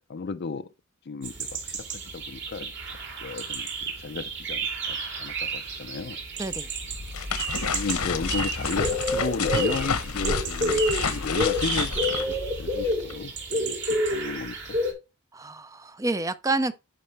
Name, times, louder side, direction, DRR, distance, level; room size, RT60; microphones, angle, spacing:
voice 1, 0.1-0.7 1.1-4.6 4.9-6.2 7.7-14.8, left 4 dB, 50° left, 0.4 m, -34 dB
sound 1, 1.2-14.9, right 1 dB, 55° right, 2.5 m, -30 dB
voice 2, 6.4-6.7 15.3-16.8, right 2 dB, 15° right, 0.4 m, -28 dB
sound 2, 6.8-13.1, left 5 dB, 85° left, 1.1 m, -30 dB
11.0 x 4.3 x 3.3 m
head